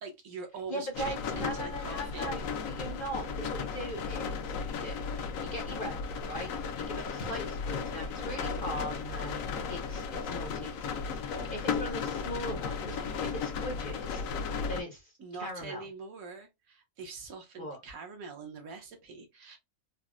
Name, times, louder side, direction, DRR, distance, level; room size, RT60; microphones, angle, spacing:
voice 1, 0.0-2.3 15.2-19.6, right 4 dB, 75° right, 1.3 m, -43 dB
voice 2, 0.7-9.4 9.7-10.9 11.2-14.2 14.7-15.1 15.4-15.8 17.6-17.8, equal, 50° left, 0.7 m, -40 dB
sound 1, 0.9-14.8, left 5 dB, 75° left, 1.0 m, -35 dB
4.0 x 2.0 x 2.3 m
omnidirectional pair, 1.5 m